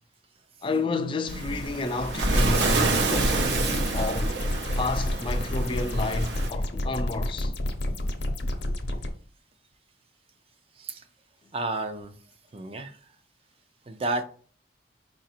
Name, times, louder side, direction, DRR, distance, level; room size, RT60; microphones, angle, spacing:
voice 1, 0.6-4.3 4.8-7.5, left 3 dB, 25° left, 0.3 m, -30 dB
Waves surf, 1.3-6.5, right 2 dB, 75° right, 0.9 m, -27 dB
sound 1, 3.5-9.1, left 1 dB, 65° left, 0.7 m, -29 dB
voice 2, 11.5-12.2 12.5-13.1 13.9-14.2, right 2 dB, 30° right, 0.5 m, -31 dB
4.8 x 2.6 x 4.2 m
head